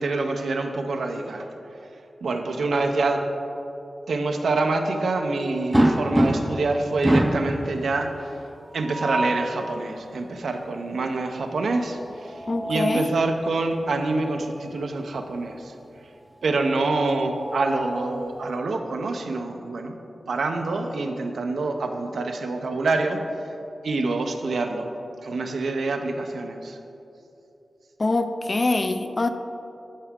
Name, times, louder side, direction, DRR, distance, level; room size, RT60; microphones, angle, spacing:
voice 1, 0.0-1.5 2.2-3.2 4.1-8.3 8.7-15.7 16.4-19.9 20.3-23.2 23.8-24.9 25.2-26.8, right 3 dB, 90° right, 4 dB, 0.5 m, -26 dB
sound 1, 5.7-6.7 7.0-7.5 8.7-9.5 12.2-13.2 14.6-14.8 15.2-15.3 16.8-18.0, right 1 dB, 15° right, 0.5 m, -24 dB
voice 2, 12.5-13.1 28.0-29.3, left 2 dB, 45° left, 9 dB, 0.4 m, -24 dB
10.0 x 4.8 x 3.6 m, 2.8 s
wide cardioid pair, 70°, 0 cm